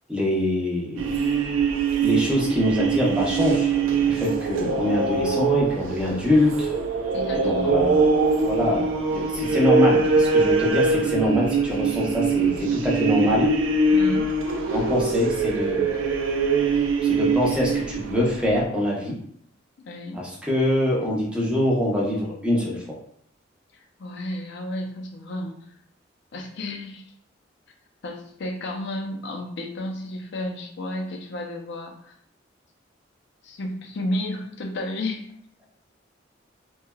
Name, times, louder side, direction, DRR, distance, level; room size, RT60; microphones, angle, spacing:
voice 1, 0.1-1.2 2.0-6.7 7.4-8.1 8.4-13.5 14.7-15.8 17.0-19.1 20.1-23.0, left 1 dB, 5° right, -4 dB, 0.7 m, -24 dB
sound 1, 1.0-18.6, right 4 dB, 80° right, 0.4 m, -23 dB
voice 2, 7.1-7.8 13.9-14.3 14.6-14.7 19.8-20.2 23.7-25.6 26.3-27.0 28.0-32.1 33.4-35.2, left 1 dB, 65° left, 1 dB, 0.5 m, -32 dB
3.2 x 2.2 x 2.2 m, 0.65 s
head